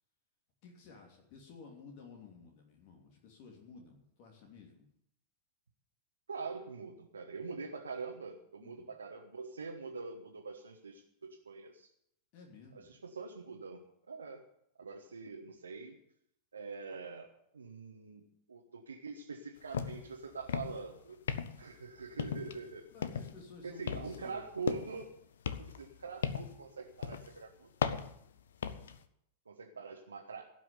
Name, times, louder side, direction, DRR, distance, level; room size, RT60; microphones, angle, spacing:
voice 1, 0.6-4.9 8.6-8.9 12.3-12.9 14.8-14.9 22.9-24.4, left 5 dB, 45° left, 1 dB, 3.0 m, -54 dB
voice 2, 6.3-11.9 12.7-14.4 14.8-16.0 16.5-17.3 17.5-21.2 21.6-22.9 23.6-25.1 25.7-27.7 29.4-30.4, right 4 dB, 75° right, 1 dB, 1.3 m, -44 dB
sound 1, 19.7-20.1 20.4-20.9 21.3-21.7 22.2-22.6 23.0-23.4 23.9-25.1 25.4-26.6 27.0-27.3 27.8-29.0, left 7 dB, 65° left, 0.8 m, -36 dB
16.5 x 6.1 x 9.5 m, 0.74 s
figure-of-eight pair, 90°, 0 cm